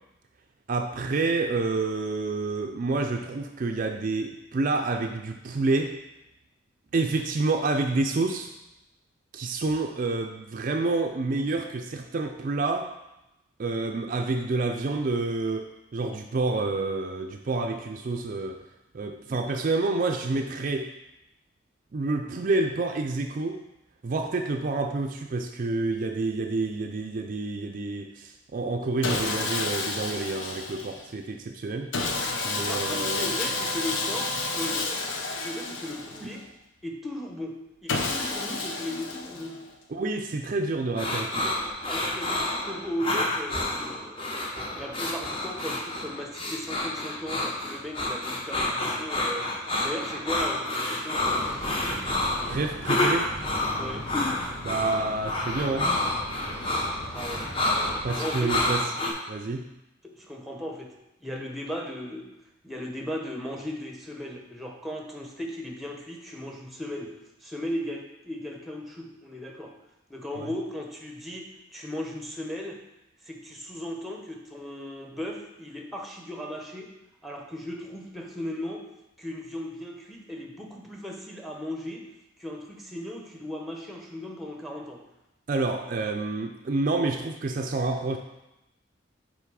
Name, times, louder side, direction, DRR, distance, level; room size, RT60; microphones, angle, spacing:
voice 1, 0.7-6.0 6.9-8.5 9.3-12.9 13.6-18.6 18.9-20.9 21.9-23.6 24.0-31.9 32.4-33.3 39.9-41.6 52.5-53.3 54.6-56.0 58.0-58.9 59.3-59.7 70.4-70.5 85.5-88.2, right 3 dB, 45° right, 4 dB, 0.4 m, -28 dB
Sawing, 29.0-31.1 31.9-36.5 37.9-39.7, left 3 dB, 80° left, 0.7 m, -30 dB
voice 2, 32.6-35.0 35.4-36.4 36.8-39.6 41.8-44.2 44.8-49.5 49.8-51.4 53.8-54.1 57.0-57.5 58.1-58.6 60.0-60.9 61.2-62.3 62.6-67.1 67.4-69.7 70.1-72.8 73.3-76.9 77.2-78.8 79.2-82.0 82.4-85.0, equal, ahead, 1 dB, 0.8 m, -36 dB
sound 1, 41.0-59.1, left 2 dB, 30° left, 0.9 m, -29 dB
sound 2, 51.1-58.1, equal, 55° left, 2.1 m, -39 dB
5.7 x 4.3 x 4.7 m, 0.92 s
head